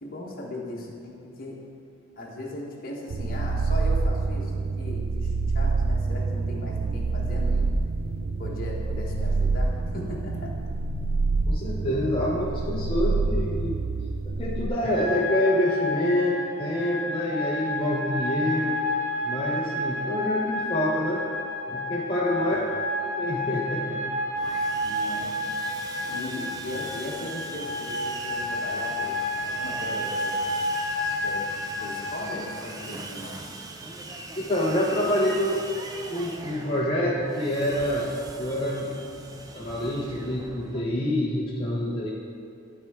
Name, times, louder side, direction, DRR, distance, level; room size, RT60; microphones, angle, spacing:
voice 1, 0.0-1.7 2.2-7.7 8.4-10.5 22.4-22.7 24.8-25.3 26.0-30.7 31.0-31.5 31.8-33.3, left 1 dB, 45° left, -3 dB, 1.2 m, -38 dB
sound 1, 3.1-14.7, right 3 dB, 85° right, 0.5 m, -27 dB
voice 2, 11.5-13.8 14.2-18.8 19.2-21.2 21.7-22.6 23.0-24.1 34.4-35.6 36.1-38.1 38.4-42.1, left 1 dB, 25° left, -6 dB, 0.7 m, -27 dB
sound 2, 14.8-32.4, left 1 dB, 60° right, 1.2 m, -30 dB
Sawing, 24.4-40.8, right 2 dB, 20° right, 0.4 m, -41 dB
12.5 x 4.4 x 3.6 m, 2.4 s
head